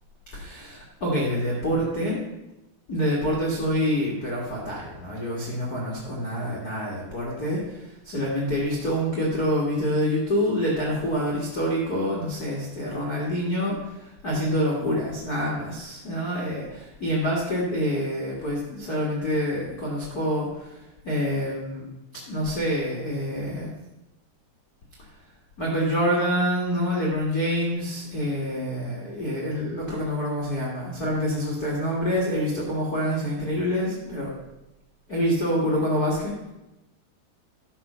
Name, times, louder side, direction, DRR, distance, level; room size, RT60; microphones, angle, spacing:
voice 1, 0.3-2.2 2.9-21.9 22.3-23.7 25.6-34.3 35.1-36.5, equal, 80° left, -5 dB, 0.8 m, -26 dB
12.0 x 6.4 x 5.6 m, 0.95 s
omnidirectional pair, 5.3 m